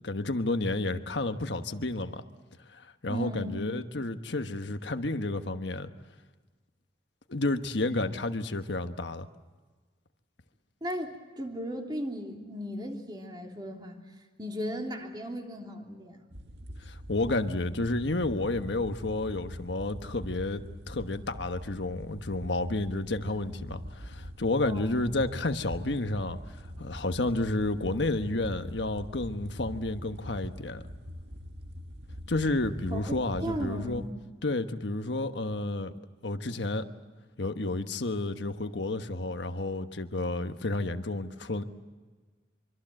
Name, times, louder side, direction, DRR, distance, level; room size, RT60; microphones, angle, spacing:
voice 1, 0.0-2.2 2.7-5.9 7.3-9.3 16.8-30.8 32.3-34.0 34.4-35.9 36.2-36.8 37.4-41.6, left 2 dB, 80° left, 8 dB, 1.3 m, -31 dB
voice 2, 3.1-3.6 10.8-14.0 14.4-16.3 24.6-25.0 32.9-33.1 33.4-34.1, equal, 25° right, 1 dB, 3.2 m, -36 dB
sound 1, 16.3-34.1, equal, 70° right, 2.0 m, -44 dB
25.5 x 24.5 x 7.7 m, 1.3 s
head